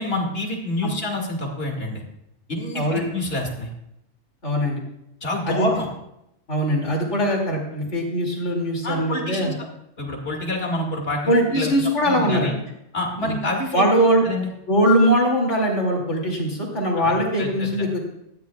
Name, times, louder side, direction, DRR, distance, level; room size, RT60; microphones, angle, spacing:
voice 1, 0.0-2.0 2.5-3.7 5.2-5.9 8.8-9.7 10.0-11.7 12.1-12.6 12.9-13.8 14.2-14.5 17.0-17.9, left 1 dB, 55° left, 1 dB, 2.4 m, -27 dB
voice 2, 4.4-4.8 5.5-5.7 6.5-9.5 11.3-12.5 13.2-13.4 13.7-14.2 14.7-18.0, equal, 75° left, -1 dB, 3.0 m, -21 dB
18.5 x 13.0 x 2.3 m, 0.81 s
omnidirectional pair, 1.2 m